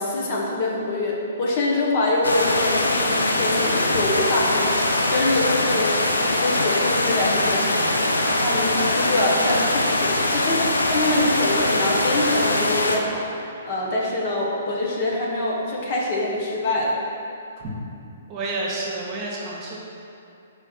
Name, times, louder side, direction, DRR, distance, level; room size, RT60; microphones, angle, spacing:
voice 1, 0.0-4.7 5.1-13.2 13.6-17.0, left 2 dB, 40° left, -4 dB, 1.3 m, -24 dB
sound 1, 2.2-13.0, left 2 dB, 80° left, 0.7 m, -22 dB
voice 2, 18.3-19.8, right 2 dB, 25° right, -4 dB, 1.4 m, -29 dB
4.8 x 4.8 x 6.0 m, 2.7 s
figure-of-eight pair, 125°, 0 cm